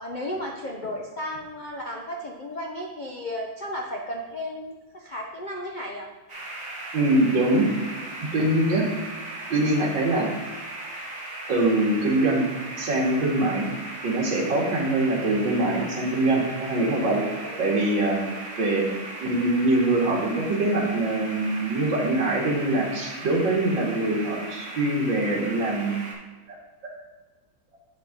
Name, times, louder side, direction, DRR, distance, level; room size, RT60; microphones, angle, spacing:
voice 1, 0.0-6.1 17.4-17.7 18.3-18.4, left 1 dB, 80° left, -1 dB, 0.4 m, -34 dB
sound 1, 6.3-26.1, right 1 dB, 40° right, 2.6 m, -38 dB
voice 2, 6.9-7.7 8.3-8.8 9.5-10.3 11.5-12.4 12.8-13.6 14.0-17.2 17.6-18.2 18.6-18.9 19.2-26.0 26.5-26.6 26.8-26.9, right 2 dB, 70° right, -2 dB, 2.7 m, -23 dB
8.2 x 6.8 x 4.0 m, 1.3 s
omnidirectional pair, 2.2 m